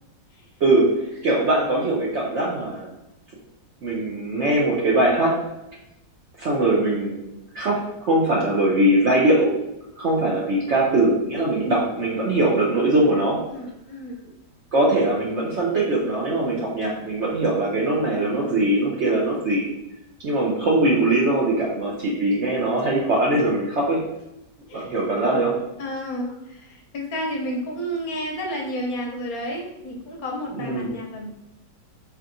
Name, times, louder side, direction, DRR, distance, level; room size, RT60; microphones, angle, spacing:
voice 1, 0.6-2.9 3.8-5.4 6.4-7.3 7.5-9.6 10.0-13.4 14.7-19.7 20.2-24.0 24.7-25.5 30.5-30.9, right 1 dB, 65° right, -4 dB, 0.7 m, -21 dB
voice 2, 13.5-14.2 24.7-25.0 25.8-31.3, equal, 65° left, 1 dB, 1.0 m, -31 dB
4.3 x 3.4 x 2.5 m, 0.91 s
omnidirectional pair, 1.9 m